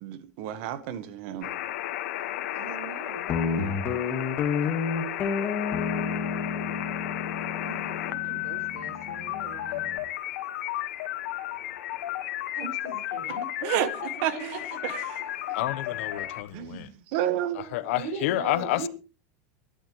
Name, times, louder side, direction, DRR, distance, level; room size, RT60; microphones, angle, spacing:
voice 1, 0.0-1.5 13.6-13.9 14.2-14.3 14.8-14.9 16.5-17.7, right 11 dB, 55° right, 1.5 m, -30 dB
sound 1, 1.4-16.4, left 14 dB, 85° left, 1.6 m, -33 dB
voice 2, 2.5-3.9 7.6-10.0 12.5-13.5 13.8-13.9 14.3-15.2 16.2-16.3 17.9-18.9, right 3 dB, 80° right, 5.9 m, -40 dB
Guitar, 3.3-10.0, left 5 dB, 25° left, 1.8 m, -31 dB
voice 3, 15.5-16.9 17.5-18.9, left 16 dB, 65° left, 1.0 m, -29 dB
23.0 x 11.5 x 3.2 m
supercardioid pair, 175°, 8 cm